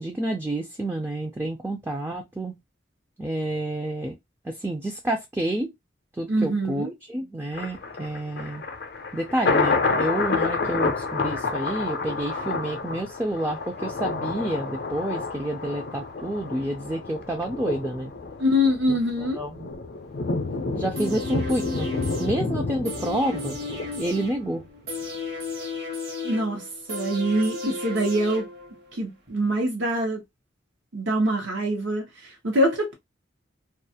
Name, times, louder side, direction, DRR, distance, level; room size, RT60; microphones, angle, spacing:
voice 1, 0.0-2.6 3.2-4.2 4.4-5.7 6.2-8.6 9.1-18.1 18.9-19.0 19.3-19.7 20.7-21.9 22.2-23.6 24.0-24.6, right 1 dB, 10° right, 0.4 m, -29 dB
voice 2, 6.3-6.9 18.4-19.4 26.2-28.5 29.0-30.2 30.9-32.9, equal, 80° right, 0.9 m, -24 dB
Thunder, 7.5-24.6 25.0-25.1, left 4 dB, 55° left, 0.5 m, -29 dB
sound 1, 21.0-28.9 29.3-29.4, left 3 dB, 50° right, 1.0 m, -34 dB
2.4 x 2.4 x 2.7 m
head